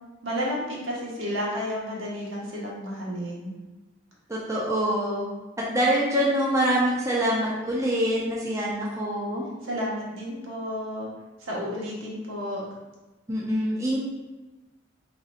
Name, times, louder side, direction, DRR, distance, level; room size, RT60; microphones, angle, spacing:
voice 1, 0.2-3.5 8.6-8.7 9.6-11.1 11.4-12.6, equal, 75° right, -5 dB, 1.3 m, -31 dB
voice 2, 4.3-5.3 5.6-9.5 13.3-14.0, equal, 15° right, -6 dB, 0.6 m, -25 dB
4.1 x 3.9 x 2.6 m, 1.2 s
head